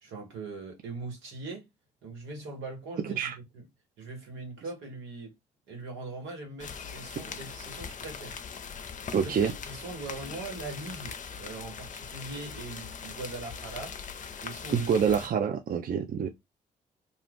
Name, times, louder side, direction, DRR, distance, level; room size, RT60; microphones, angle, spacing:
voice 1, 0.0-1.7 2.0-3.6 4.0-5.3 5.7-8.4 9.2-9.3 9.7-13.9 14.4-14.9, right 3 dB, 75° right, 1.5 m, -41 dB
voice 2, 3.0-3.3 9.1-9.5 14.7-16.3, right 7 dB, 45° right, 0.6 m, -26 dB
sound 1, 6.6-15.3, left 6 dB, 40° left, 0.6 m, -41 dB
2.5 x 2.4 x 3.3 m
hypercardioid pair, 45°, 20 cm